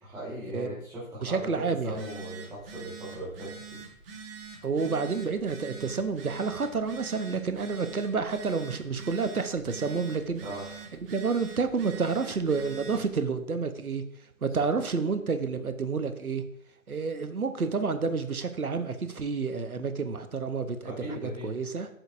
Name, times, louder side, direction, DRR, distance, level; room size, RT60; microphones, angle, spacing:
voice 1, 0.0-3.8 10.4-10.6 14.6-14.7 20.8-21.5, right 1 dB, 5° right, 1.5 m, -38 dB
voice 2, 1.2-2.0 4.6-10.4 11.1-14.0 14.4-16.4 16.9-21.9, right 4 dB, 85° right, 0.9 m, -29 dB
Telephone, 1.8-13.1, right 5 dB, 40° right, 1.5 m, -45 dB
7.9 x 6.4 x 2.6 m
figure-of-eight pair, 135°, 42 cm